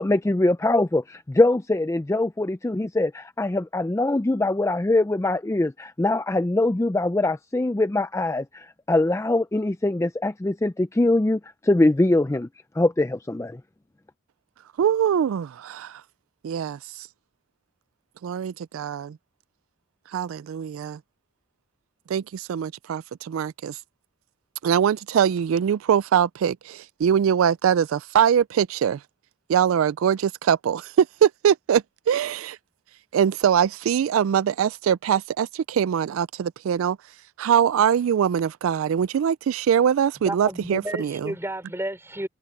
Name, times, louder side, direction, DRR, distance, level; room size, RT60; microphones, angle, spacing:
voice 1, 0.0-12.5 12.8-13.6, left 2 dB, 15° left, 0.4 m, -23 dB
voice 2, 14.8-16.0 16.4-17.1 18.2-19.2 20.1-21.0 22.1-23.8 24.6-29.0 29.5-32.6 33.1-37.0 37.4-41.3, right 8 dB, 85° right, 0.3 m, -23 dB
voice 3, 40.2-42.3, right 1 dB, 10° right, 4.3 m, -31 dB
open air
head